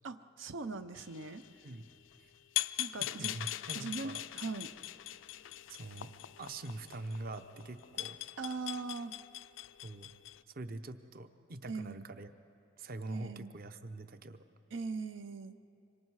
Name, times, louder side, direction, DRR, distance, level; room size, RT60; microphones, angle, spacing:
voice 1, 0.0-1.4 2.8-3.3 3.7-4.7 8.4-9.1 11.7-12.1 13.1-13.5 14.7-15.6, right 4 dB, 90° right, 9 dB, 0.7 m, -40 dB
sound 1, 1.0-10.4, left 14 dB, 90° left, 0.5 m, -42 dB
voice 2, 3.2-4.2 5.7-6.1 6.4-8.2 9.8-10.1 10.5-12.3 12.8-14.4, right 2 dB, 50° right, 10 dB, 0.8 m, -44 dB
26.0 x 24.0 x 4.8 m, 2.7 s
head